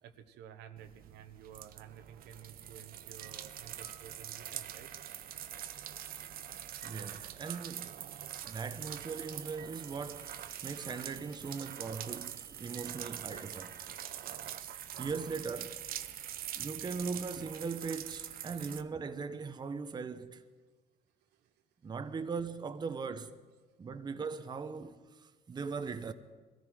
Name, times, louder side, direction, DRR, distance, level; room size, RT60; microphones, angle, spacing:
voice 1, 0.0-5.3 8.2-8.6 11.4-11.5 14.9-15.0 16.3-16.5 18.5-18.7 21.2-21.5 21.8-22.2 23.5-23.6 24.0-24.1, right 9 dB, 85° right, 1.1 m, -54 dB
sound 1, 0.8-18.8, right 11 dB, 60° right, 0.7 m, -44 dB
sound 2, 2.6-2.9 3.2-4.6 6.2-8.5 9.6-10.4 10.8-11.6 12.7-13.8, right 6 dB, 40° right, 1.5 m, -60 dB
voice 2, 6.8-8.0 8.4-13.7 15.0-15.8 16.6-20.4 21.8-23.3 23.8-26.1, right 5 dB, 25° right, 0.7 m, -39 dB
sound 3, 8.0-14.6, left 1 dB, 70° left, 3.4 m, -63 dB
21.5 x 14.0 x 4.8 m
cardioid pair, 110°, 17 cm